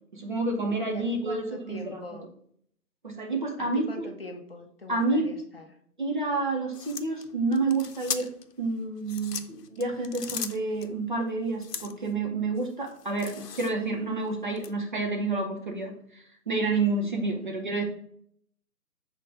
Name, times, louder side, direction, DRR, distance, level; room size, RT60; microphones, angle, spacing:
voice 1, 0.1-2.2 3.0-4.1 4.9-5.3 6.0-8.3 8.6-17.8, right 3 dB, 30° right, 1 dB, 0.8 m, -29 dB
voice 2, 0.9-2.3 3.6-5.7, left 2 dB, 40° left, 4 dB, 0.7 m, -42 dB
sound 1, 6.7-8.5 9.0-10.9 11.6-12.1 12.6-13.9 14.6-14.7, left 7 dB, 80° left, 0.8 m, -38 dB
6.2 x 3.3 x 5.1 m, 0.65 s
figure-of-eight pair, 160°, 47 cm